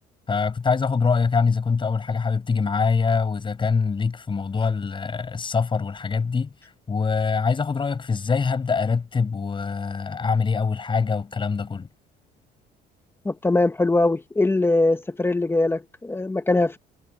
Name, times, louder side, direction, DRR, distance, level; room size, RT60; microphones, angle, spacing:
voice 1, 0.3-6.5 6.9-11.9, left 5 dB, 30° left, 5.8 m, -24 dB
voice 2, 13.2-16.8, left 2 dB, 15° left, 1.3 m, -21 dB
cardioid pair, 110°, 17 cm